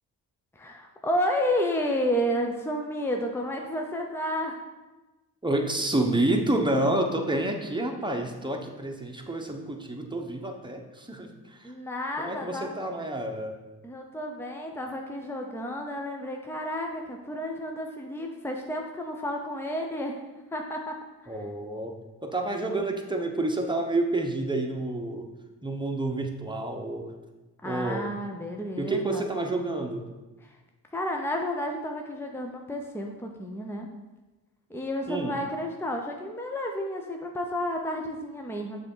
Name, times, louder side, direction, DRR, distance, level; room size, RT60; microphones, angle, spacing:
voice 1, 0.6-4.6 11.6-12.8 13.8-20.2 20.5-20.9 21.2-21.4 27.6-29.2 30.4-30.5 30.9-33.9 34.7-38.8, equal, 5° left, 2 dB, 0.8 m, -31 dB
voice 2, 5.4-11.7 12.2-13.5 21.3-21.9 22.2-25.3 25.6-27.0 27.6-28.1 28.8-30.0 35.1-35.3, right 2 dB, 10° right, 2 dB, 1.2 m, -29 dB
6.6 x 3.7 x 5.6 m, 1.1 s
supercardioid pair, 45°, 42 cm